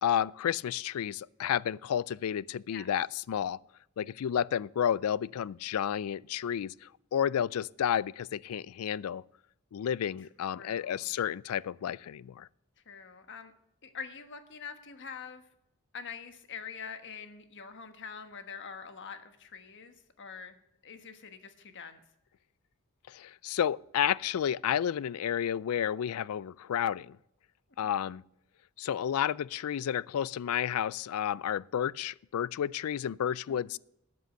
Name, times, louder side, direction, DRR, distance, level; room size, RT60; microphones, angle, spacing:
voice 1, 0.0-3.6 4.0-9.2 9.7-12.5 23.1-27.2 27.8-28.2 28.8-33.8, left 9 dB, 85° left, 0.3 m, -31 dB
voice 2, 10.2-11.1 12.9-13.5 13.8-15.4 15.9-20.5 20.8-22.0 33.5-33.7, left 6 dB, 60° left, 1.3 m, -45 dB
13.0 x 7.7 x 6.6 m
head